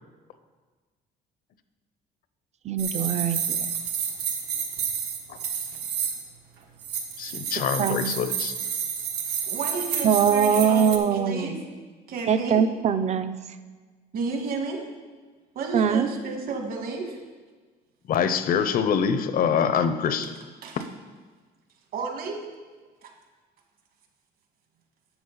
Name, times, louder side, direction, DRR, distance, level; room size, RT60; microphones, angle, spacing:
voice 1, 2.6-3.7 7.8-8.1 10.0-11.5 12.3-13.3 15.7-16.1, right 7 dB, 40° right, 10 dB, 0.6 m, -22 dB
sound 1, 2.8-6.3 6.8-11.0, right 7 dB, 80° right, 1.5 m, -30 dB
voice 2, 7.2-8.5 18.1-20.4 20.8-20.9, left 7 dB, 60° left, 11 dB, 0.8 m, -25 dB
voice 3, 9.5-11.6 12.1-12.6 14.1-14.8 15.6-17.2 20.0-20.1 20.6-20.9 21.9-22.4 23.0-23.1, right 4 dB, 60° right, 3 dB, 1.8 m, -32 dB
12.0 x 7.3 x 4.0 m, 1.4 s
cardioid pair, 110°, 17 cm